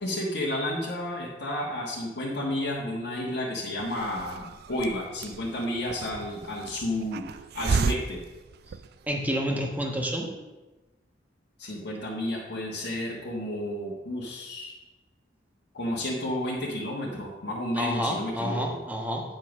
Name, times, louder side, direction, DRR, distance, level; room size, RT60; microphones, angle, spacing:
voice 1, 0.0-7.3 7.5-8.2 11.6-14.7 15.7-18.8, left 1 dB, 65° left, -5 dB, 1.4 m, -31 dB
Hiss, 3.8-9.3, right 5 dB, 60° right, 0.4 m, -34 dB
voice 2, 9.1-10.3 17.7-19.2, equal, 10° right, 1 dB, 1.3 m, -29 dB
8.8 x 5.2 x 6.2 m, 1.1 s
head